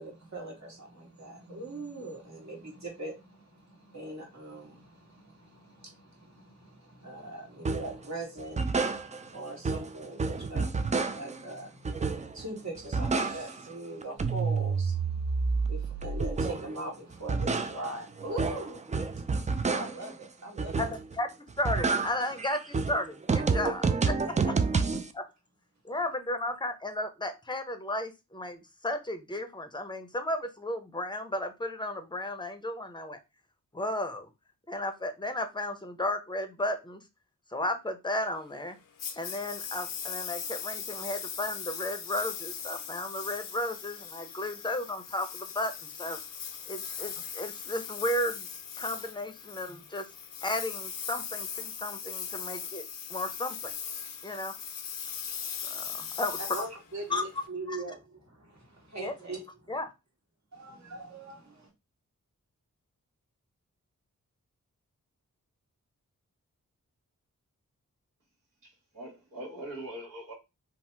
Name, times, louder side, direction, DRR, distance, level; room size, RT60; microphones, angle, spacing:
voice 1, 0.0-20.8 24.0-24.5 56.5-59.8 60.5-61.7, right 2 dB, 55° right, 1.5 m, -41 dB
sound 1, 7.7-8.0 8.4-9.4 9.6-11.4 11.9-12.5 12.8-13.7 14.0-16.8 17.1-20.1 20.6-21.2 21.5-25.1, right 4 dB, 25° right, 0.3 m, -29 dB
voice 2, 20.8-21.3 21.6-24.2 24.5-24.6 25.1-25.3 25.8-33.2 33.7-34.3 34.7-37.0 37.5-38.8 39.2-46.2 46.7-48.5 48.8-50.1 50.4-52.8 53.1-53.7 54.2-54.5 55.7-56.4 57.1-57.2 57.7-57.8 59.0-59.1 59.7-59.9, left 1 dB, 15° left, 0.6 m, -34 dB
Engine, 39.0-57.5, left 7 dB, 75° left, 0.6 m, -39 dB
voice 3, 68.6-70.3, right 1 dB, 75° right, 1.5 m, -42 dB
2.8 x 2.1 x 3.2 m
cardioid pair, 45°, 33 cm